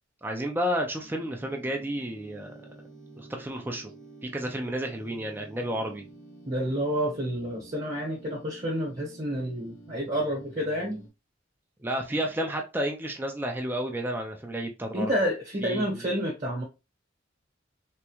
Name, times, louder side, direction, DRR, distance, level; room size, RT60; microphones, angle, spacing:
voice 1, 0.2-2.5 3.2-3.9 4.2-6.0 11.8-15.1 15.6-15.8, equal, 10° right, 0.4 m, -31 dB
sound 1, 1.0-11.1, right 2 dB, 80° left, 1.3 m, -50 dB
voice 2, 6.5-11.0 14.9-16.6, equal, 35° right, 1.0 m, -29 dB
3.5 x 2.1 x 2.9 m
head